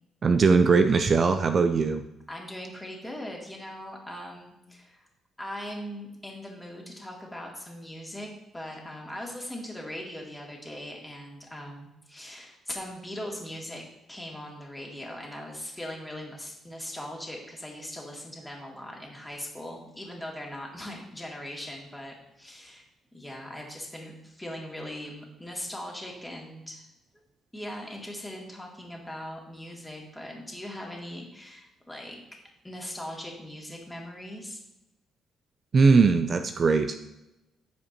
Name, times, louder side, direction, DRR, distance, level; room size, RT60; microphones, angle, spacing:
voice 1, 0.2-2.0 35.7-36.9, right 4 dB, 45° right, 8 dB, 0.5 m, -20 dB
voice 2, 2.3-5.0 5.4-22.9 23.1-26.9 27.5-32.2 32.6-34.6, left 1 dB, 10° left, -1 dB, 2.3 m, -40 dB
14.5 x 5.1 x 2.9 m, 0.92 s
cardioid pair, 90°, 0 cm